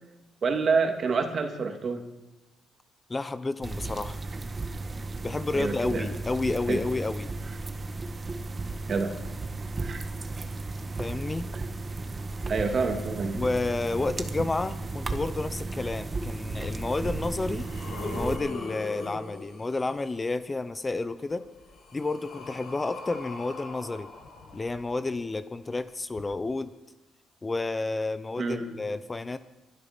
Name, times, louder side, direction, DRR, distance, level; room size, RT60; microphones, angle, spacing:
voice 1, 0.4-2.0 5.5-6.1 6.7-6.8 8.9-9.2 9.8-10.0 12.5-13.4 28.4-28.7, right 4 dB, 50° right, 5 dB, 2.5 m, -27 dB
voice 2, 3.1-4.2 5.2-7.3 11.0-11.5 13.3-17.7 18.0-21.5 21.9-24.1 24.5-26.7 27.4-29.4, left 3 dB, 25° left, 12 dB, 0.8 m, -30 dB
sound 1, 3.6-18.4, right 3 dB, 30° right, 1.5 m, -34 dB
sound 2, 16.6-16.7 17.3-20.1 21.3-25.2 26.1-26.2, left 3 dB, 70° left, 7.5 m, -41 dB
24.0 x 11.0 x 5.3 m, 1.1 s
cardioid pair, 90°, 0 cm